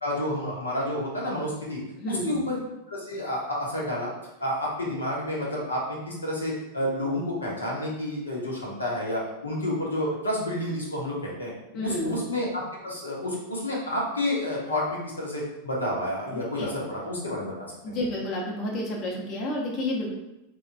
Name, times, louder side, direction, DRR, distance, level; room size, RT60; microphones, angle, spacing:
voice 1, 0.0-2.6 2.9-4.1 4.4-18.0, left 1 dB, 85° left, -4 dB, 0.7 m, -30 dB
voice 2, 2.0-2.4 11.7-12.2 16.6-16.7 17.8-20.1, left 1 dB, 40° left, -2 dB, 0.7 m, -30 dB
3.1 x 2.1 x 2.5 m, 0.93 s
figure-of-eight pair, 95°, 0 cm